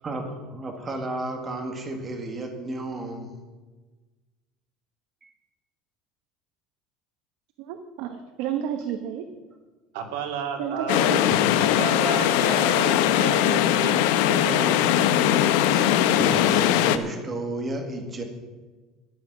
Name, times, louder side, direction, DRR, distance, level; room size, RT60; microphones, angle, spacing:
voice 1, 0.0-3.3 5.2-5.3 11.3-11.7 15.6-18.2, right 2 dB, 20° right, 3 dB, 1.8 m, -33 dB
voice 2, 7.6-9.3 10.6-11.2, right 9 dB, 60° right, 7 dB, 1.0 m, -31 dB
voice 3, 9.9-11.1 11.8-15.0, right 6 dB, 80° right, 3 dB, 2.8 m, -32 dB
sound 1, 10.9-17.0, left 11 dB, 75° left, 0.9 m, -20 dB
13.0 x 11.0 x 6.1 m, 1.3 s
cardioid pair, 165°, 0 cm